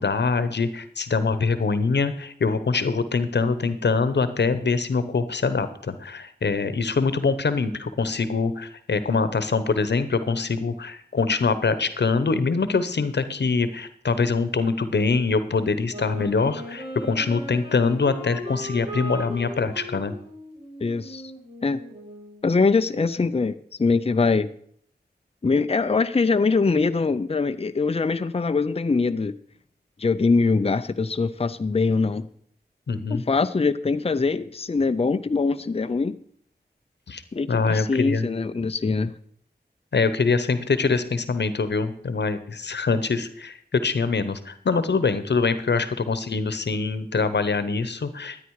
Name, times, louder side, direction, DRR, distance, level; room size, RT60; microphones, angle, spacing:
voice 1, 0.0-20.1 32.9-33.2 37.1-37.2 37.5-38.2 39.9-48.4, left 4 dB, 90° left, 12 dB, 1.0 m, -24 dB
Wind instrument woodwind instrument, 15.9-22.5, equal, 35° right, 5.5 m, -38 dB
voice 2, 20.8-21.3 21.6-21.8 22.4-24.5 25.4-29.4 30.0-32.3 33.1-36.2 37.3-39.1, left 4 dB, 35° left, 11 dB, 0.6 m, -23 dB
13.0 x 9.6 x 4.8 m, 0.63 s
wide cardioid pair, 45°, 17 cm